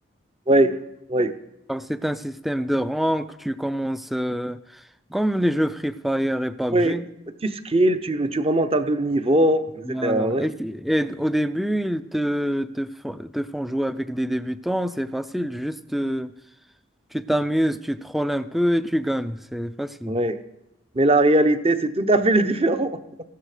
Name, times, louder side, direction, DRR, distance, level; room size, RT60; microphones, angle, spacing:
voice 1, 0.5-0.8 1.1-1.3 6.7-6.9 7.4-10.5 20.1-20.4 20.9-23.0, right 1 dB, 30° right, 11 dB, 0.8 m, -20 dB
voice 2, 1.7-4.8 5.1-7.0 9.8-16.3 17.1-20.1, equal, ahead, 14 dB, 0.4 m, -26 dB
15.0 x 12.5 x 5.0 m, 0.87 s
head